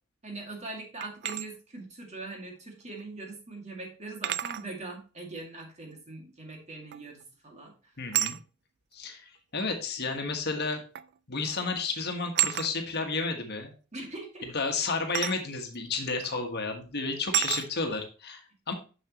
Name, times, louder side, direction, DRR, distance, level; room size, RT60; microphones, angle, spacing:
voice 1, 0.2-7.7 13.9-14.5, right 2 dB, 35° right, 1 dB, 2.2 m, -41 dB
sound 1, 1.0-1.5 3.0-3.1 4.2-4.7 6.9-7.2 8.1-8.4 9.6-9.7 11.0-11.2 11.5-11.7 12.4-12.7 15.1-15.4 16.2-16.4 17.3-17.7, right 13 dB, 50° right, 0.3 m, -30 dB
voice 2, 8.0-8.4 8.9-10.8 11.3-13.7 14.5-18.4 18.7-18.8, left 4 dB, 50° left, 4 dB, 1.4 m, -31 dB
7.4 x 6.4 x 3.0 m, 0.34 s
head